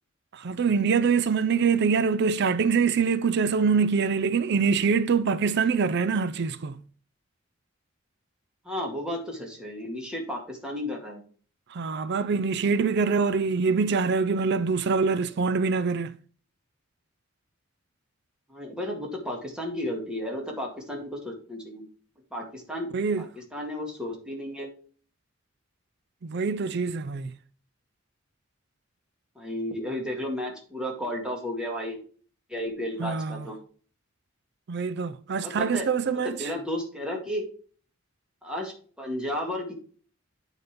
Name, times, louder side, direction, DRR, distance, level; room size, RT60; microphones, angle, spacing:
voice 1, 0.3-6.8 11.7-16.1 22.9-23.3 26.2-27.3 33.0-33.5 34.7-36.5, right 5 dB, 60° right, 0.5 m, -24 dB
voice 2, 8.7-11.2 18.5-21.8 22.3-22.9 23.2-24.7 29.4-32.0 32.5-33.5 35.4-35.9 36.4-37.5 38.4-39.7, left 1 dB, 5° right, 2.1 m, -33 dB
9.1 x 4.1 x 5.0 m
head